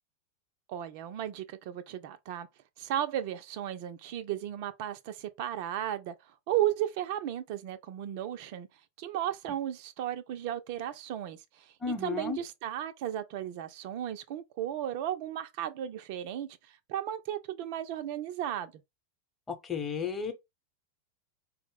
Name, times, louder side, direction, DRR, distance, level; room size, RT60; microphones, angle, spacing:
voice 1, 0.7-2.5 2.8-8.7 9.0-18.7, right 11 dB, 45° right, 0.3 m, -35 dB
voice 2, 11.8-12.4 19.6-20.3, left 6 dB, 15° left, 0.9 m, -33 dB
4.3 x 2.0 x 3.3 m
figure-of-eight pair, 90°, 0 cm